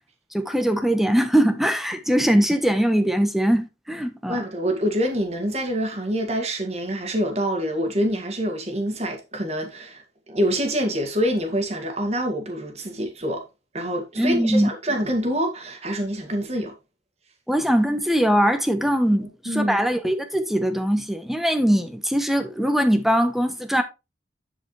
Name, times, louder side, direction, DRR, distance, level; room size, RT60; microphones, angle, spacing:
voice 1, 0.3-4.4 14.2-14.7 17.5-23.8, equal, ahead, 1.0 m, -21 dB
voice 2, 4.3-10.0 10.3-13.4 13.7-16.7 19.2-19.8, equal, 35° right, 2.0 m, -26 dB
11.0 x 5.0 x 3.3 m
head